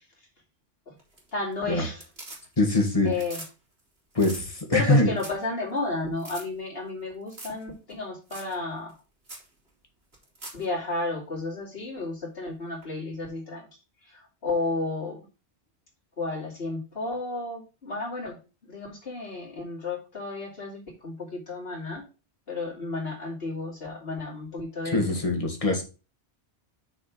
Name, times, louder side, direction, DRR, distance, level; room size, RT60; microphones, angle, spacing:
sound 1, 1.0-1.5 1.8-2.8 3.1-3.5 3.8-3.9 4.1-4.4 4.9-5.0 5.2-5.5 5.8-5.9 6.2-6.4 7.3-7.6 7.9-8.0 8.3-8.5 8.9-9.0 9.3-9.5 10.1-10.6 12.8-12.9, right 2 dB, 70° right, 2.9 m, -42 dB
voice 1, 1.3-2.0 3.0-3.4 4.7-8.9 10.5-13.7 14.0-15.2 16.2-18.4 18.7-22.0 22.5-25.0, left 3 dB, 60° left, -2 dB, 2.8 m, -32 dB
voice 2, 2.6-3.1 4.1-5.1 24.8-25.8, left 2 dB, 30° left, 3 dB, 1.8 m, -23 dB
6.3 x 4.4 x 5.7 m, 0.32 s
omnidirectional pair, 1.1 m